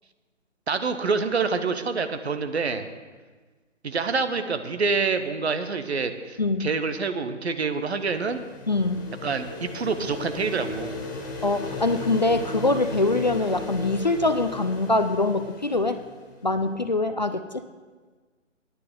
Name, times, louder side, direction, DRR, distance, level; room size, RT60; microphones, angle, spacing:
voice 1, 0.7-2.9 3.8-8.4 9.2-11.0, right 4 dB, 60° right, 9 dB, 1.0 m, -27 dB
voice 2, 6.4-6.7 8.7-9.1 11.4-16.0 16.4-17.6, left 2 dB, 40° left, 10 dB, 0.4 m, -24 dB
sound 1, 7.7-16.4, left 3 dB, 15° left, 0.7 m, -36 dB
16.5 x 9.7 x 3.9 m, 1.4 s
figure-of-eight pair, 145°, 37 cm